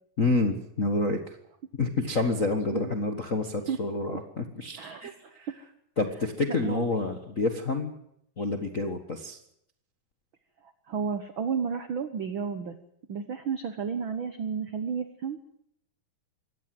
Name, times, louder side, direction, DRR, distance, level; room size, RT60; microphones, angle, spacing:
voice 1, 0.2-1.4 1.8-5.5 6.0-7.9 8.4-9.4, left 3 dB, 50° left, 6 dB, 0.9 m, -28 dB
voice 2, 4.8-5.5 6.0-7.0 10.6-12.8 13.1-15.5, right 6 dB, 80° right, 10 dB, 1.1 m, -33 dB
23.0 x 17.5 x 7.8 m, 0.75 s
omnidirectional pair, 4.0 m